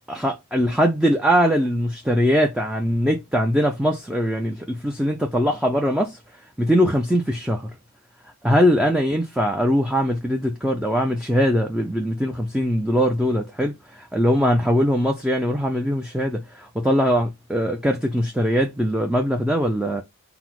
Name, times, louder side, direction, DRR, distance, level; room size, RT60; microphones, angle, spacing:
voice 1, 0.1-6.2 6.6-7.7 8.4-20.0, equal, 5° right, 0.3 m, -21 dB
4.5 x 2.0 x 3.7 m
head